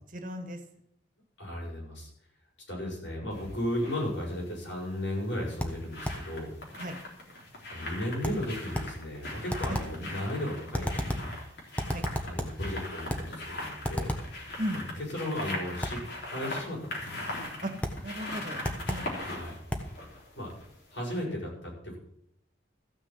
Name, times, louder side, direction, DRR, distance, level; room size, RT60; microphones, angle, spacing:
voice 1, 0.1-0.6 6.8-6.9 9.7-9.8 11.9-12.0 14.6-14.8 17.6-17.7 18.0-19.0, equal, 45° right, 6 dB, 1.8 m, -36 dB
voice 2, 1.4-2.1 2.7-6.5 7.7-11.3 12.3-14.2 14.9-16.0 16.3-17.2 19.2-19.6 20.3-20.5 20.9-22.0, left 1 dB, 90° left, -3 dB, 7.1 m, -35 dB
sound 1, 3.3-4.0 5.3-20.8 21.1-21.2, left 1 dB, 65° left, 3.7 m, -40 dB
sound 2, 5.6-6.3 8.2-9.0 9.5-10.0 10.7-11.4 11.8-12.6 13.1-13.4 13.8-14.4 15.8-16.1 17.8-18.1 18.6-19.2 19.7-20.0, equal, 10° left, 1.2 m, -33 dB
14.5 x 6.4 x 7.7 m, 0.73 s
head